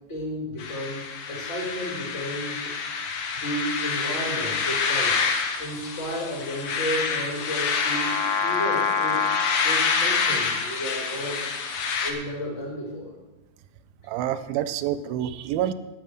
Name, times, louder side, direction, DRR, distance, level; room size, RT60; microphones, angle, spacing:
voice 1, 0.1-2.7 3.4-5.2 5.6-11.4 12.0-13.1, equal, 30° left, -3 dB, 5.0 m, -33 dB
sound 1, 0.6-12.1, left 5 dB, 75° left, 1.2 m, -26 dB
voice 2, 14.1-15.7, right 11 dB, 85° right, 12 dB, 2.4 m, -27 dB
10.5 x 9.9 x 6.4 m, 1.0 s
omnidirectional pair, 4.2 m